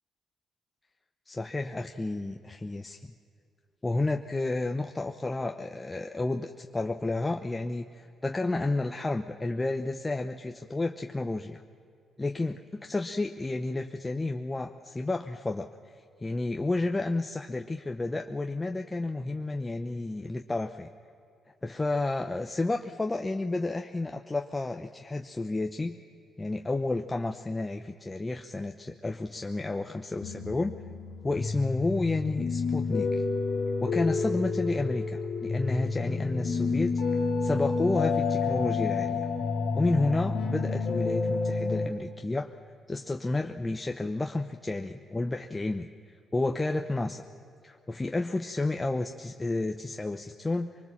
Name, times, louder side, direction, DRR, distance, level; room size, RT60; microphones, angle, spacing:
voice 1, 1.3-3.1 3.8-11.6 12.2-15.7 16.2-20.9 21.6-26.0 26.4-30.8 31.2-33.2 33.8-37.0 37.4-39.2 39.7-42.5 42.9-45.9 46.3-47.2 47.6-50.7, left 2 dB, 20° left, 5 dB, 0.9 m, -31 dB
sound 1, 30.2-41.9, left 4 dB, 65° left, 2.2 m, -29 dB
24.5 x 20.0 x 7.4 m, 2.5 s
cardioid pair, 90°, 0 cm